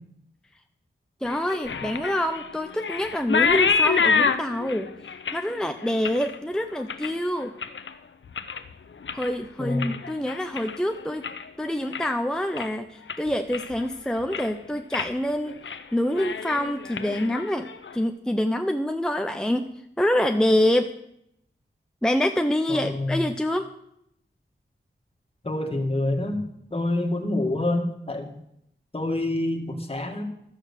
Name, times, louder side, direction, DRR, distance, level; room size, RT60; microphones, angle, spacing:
sound 1, 1.2-7.9 8.2-8.7 9.0-11.5 11.8-12.2 12.6-12.7 13.1-13.9 14.2-14.6 14.9-15.1 15.5-15.8 16.1-17.9, left 5 dB, 75° left, 0.8 m, -28 dB
voice 1, 1.2-4.9 5.3-7.5 9.1-11.3 11.6-17.7 17.9-19.7 20.0-20.9 22.0-23.7, left 1 dB, 5° left, 6 dB, 0.6 m, -26 dB
voice 2, 9.6-10.0 22.7-23.3 25.4-26.5 26.7-28.4 28.9-30.2, left 1 dB, 30° left, 2 dB, 1.9 m, -27 dB
12.5 x 7.8 x 6.6 m, 0.76 s
wide cardioid pair, 100°, 20 cm